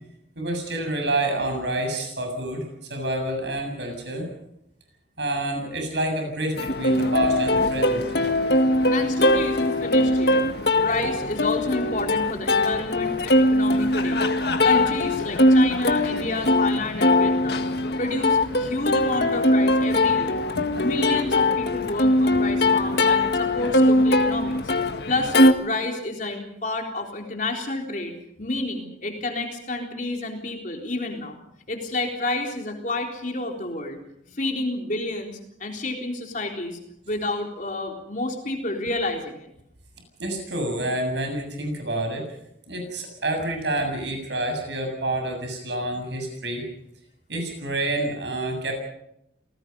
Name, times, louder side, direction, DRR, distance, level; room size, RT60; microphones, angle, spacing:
voice 1, 0.4-4.3 5.2-8.0 40.2-42.3 42.7-46.6 47.3-48.7, right 1 dB, 70° right, 4 dB, 7.2 m, -28 dB
Plucked string instrument, 6.6-25.5, left 1 dB, 60° left, 1.8 m, -21 dB
voice 2, 8.9-10.4 10.8-14.2 14.6-17.7 18.0-20.4 20.8-24.6 25.1-31.4 31.7-34.0 34.3-36.8 37.1-39.5, left 2 dB, 45° left, 2 dB, 3.8 m, -29 dB
29.0 x 19.0 x 5.4 m, 0.78 s
head